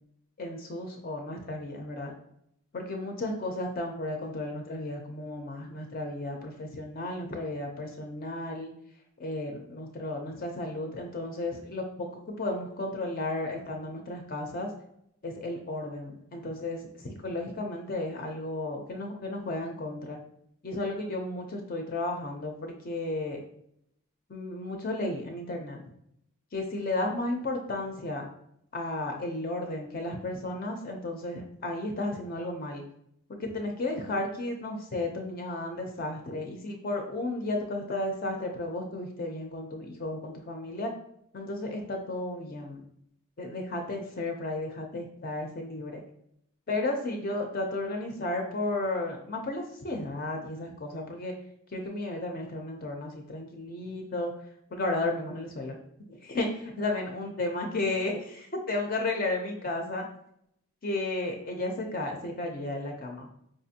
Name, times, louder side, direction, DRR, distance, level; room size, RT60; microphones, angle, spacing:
voice 1, 0.4-2.1 2.7-8.7 9.2-14.7 15.2-20.2 20.6-23.4 24.3-25.8 26.5-28.3 28.7-32.8 33.3-40.9 41.3-42.8 43.4-46.0 46.7-51.3 51.7-54.3 54.7-55.8 56.2-60.1 60.8-63.3, left 2 dB, 40° left, 2 dB, 0.4 m, -33 dB
4.8 x 2.5 x 2.7 m, 0.73 s
head